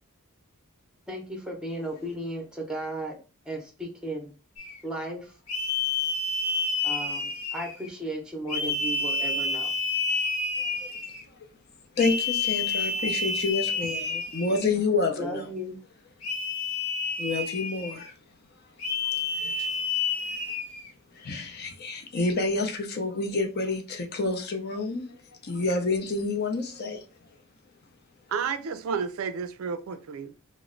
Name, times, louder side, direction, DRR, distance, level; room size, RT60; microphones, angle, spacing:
voice 1, 1.1-3.2 3.5-4.3 4.8-5.3 6.8-9.7 15.2-15.8, right 1 dB, 5° right, 0.7 m, -35 dB
sound 1, 4.6-4.8 5.5-7.9 8.5-11.2 12.0-14.8 16.2-18.1 18.8-20.9, left 3 dB, 80° left, 0.9 m, -29 dB
voice 2, 10.6-10.9 11.9-15.5 17.2-18.1 19.3-19.7 21.1-25.2 25.4-27.0, left 3 dB, 45° left, 0.6 m, -29 dB
voice 3, 28.3-30.3, right 6 dB, 65° right, 0.4 m, -32 dB
3.0 x 2.0 x 3.7 m
head